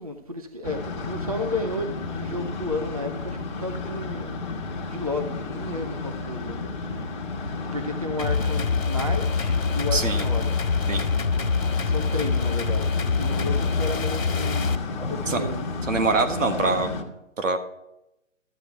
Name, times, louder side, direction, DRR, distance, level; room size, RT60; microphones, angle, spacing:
voice 1, 0.0-4.3 4.9-7.1 7.7-10.6 11.8-15.7, left 2 dB, 30° right, 6 dB, 0.4 m, -32 dB
sound 1, 0.6-17.0, left 3 dB, 35° left, 1.3 m, -32 dB
sound 2, 8.2-14.7, left 5 dB, 85° left, 1.5 m, -25 dB
voice 2, 9.9-10.2 10.9-11.1 15.3-15.4 15.9-16.9 17.4-17.6, right 3 dB, 75° right, 7 dB, 1.5 m, -24 dB
12.5 x 7.9 x 4.4 m, 0.87 s
hypercardioid pair, 165°, 39 cm